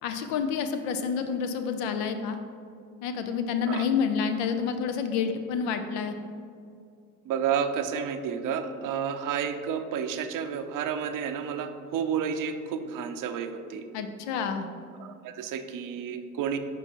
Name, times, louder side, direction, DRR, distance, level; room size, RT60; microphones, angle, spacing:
voice 1, 0.0-2.4 3.0-6.1 13.9-14.7, left 6 dB, 70° left, 7 dB, 0.7 m, -29 dB
voice 2, 7.3-13.9 15.0-16.6, right 7 dB, 50° right, 8 dB, 0.6 m, -31 dB
5.3 x 4.6 x 4.5 m, 2.3 s
hypercardioid pair, 65°, 43 cm